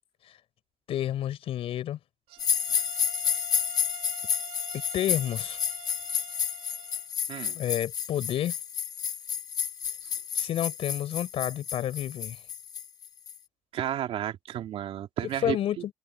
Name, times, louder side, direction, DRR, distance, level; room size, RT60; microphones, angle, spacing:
voice 1, 0.9-2.0 4.9-5.6 7.5-8.5 10.3-12.4 15.4-15.8, left 11 dB, 50° left, 6.3 m, -29 dB
sound 1, 2.3-7.1, right 13 dB, 70° right, 4.3 m, -47 dB
sound 2, 2.4-13.4, left 7 dB, 30° left, 0.7 m, -31 dB
voice 2, 7.3-7.6 13.7-15.9, right 11 dB, 55° right, 2.6 m, -32 dB
cardioid pair, 180°, 12 cm